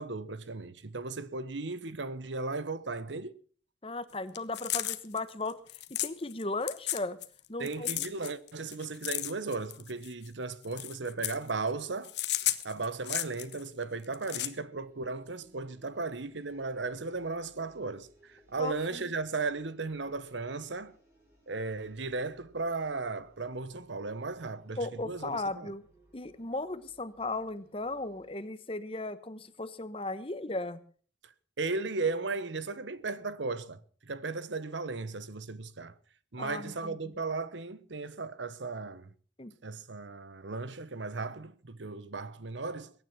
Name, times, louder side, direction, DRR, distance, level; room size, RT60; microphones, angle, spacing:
voice 1, 0.0-3.3 7.6-12.1 12.6-20.9 21.5-25.7 31.2-31.3 31.6-35.9 36.3-39.1 39.6-42.9, right 3 dB, 85° right, 1.1 m, -36 dB
voice 2, 3.8-5.6 5.9-7.2 7.5-8.1 18.6-19.1 24.8-25.8 26.1-30.8 36.4-37.0 39.4-39.5, left 2 dB, 30° left, 1.1 m, -36 dB
sound 1, 4.3-6.4 6.7-7.4 7.7-10.3 10.6-11.5 12.0-13.6 14.0-14.5, left 14 dB, 70° left, 1.1 m, -33 dB
sound 2, 14.1-28.3, right 1 dB, 15° right, 7.0 m, -64 dB
22.0 x 9.7 x 5.8 m
head